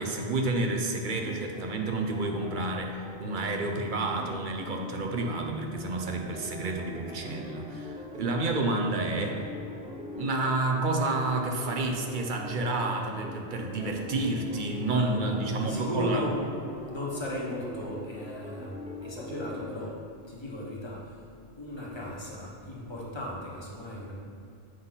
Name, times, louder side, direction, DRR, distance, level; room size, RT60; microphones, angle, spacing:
voice 1, 0.0-9.5 10.2-16.2, right 2 dB, 55° right, 2 dB, 0.8 m, -30 dB
sound 1, 1.2-19.9, left 1 dB, 10° right, 0.4 m, -42 dB
voice 2, 14.9-16.3 16.9-20.0 20.3-21.2 21.6-24.1, left 1 dB, 25° left, -4 dB, 1.3 m, -36 dB
7.9 x 5.5 x 4.0 m, 2.4 s
omnidirectional pair, 1.1 m